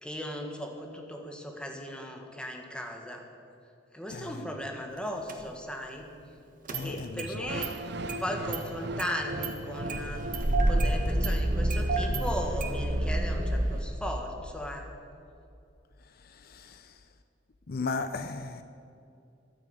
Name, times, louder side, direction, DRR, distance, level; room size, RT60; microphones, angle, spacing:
voice 1, 0.0-3.2 3.9-6.1 6.7-7.7 8.2-10.2 10.6-14.9, equal, 5° left, 2 dB, 1.7 m, -37 dB
Engine starting, 5.3-5.4 6.7-7.3 7.6-7.7 8.1-8.2 8.5-8.6 9.0-9.5 9.9-13.8, right 1 dB, 50° right, 1.4 m, -28 dB
voice 2, 6.7-7.5 16.4-16.9 17.7-18.6, left 3 dB, 55° left, 10 dB, 0.6 m, -35 dB
sound 1, 7.5-13.5, right 1 dB, 65° right, 0.8 m, -38 dB
13.5 x 9.8 x 8.2 m, 2.6 s
head